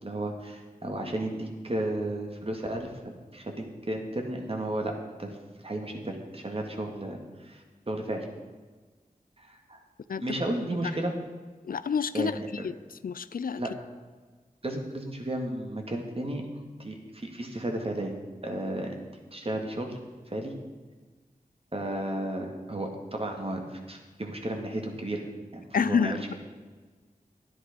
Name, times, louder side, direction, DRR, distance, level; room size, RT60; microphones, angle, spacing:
voice 1, 0.0-2.9 3.3-4.9 5.2-8.3 9.4-9.8 10.2-11.2 12.1-12.5 13.6-13.7 14.6-18.1 18.4-19.0 19.3-20.0 20.3-20.5 21.7-25.2 25.5-26.3, right 1 dB, 40° right, 2 dB, 2.1 m, -33 dB
voice 2, 11.6-12.7 13.0-13.6 25.7-26.3, left 6 dB, 75° left, 15 dB, 0.4 m, -28 dB
11.0 x 10.0 x 5.2 m, 1.4 s
wide cardioid pair, 55°, 15 cm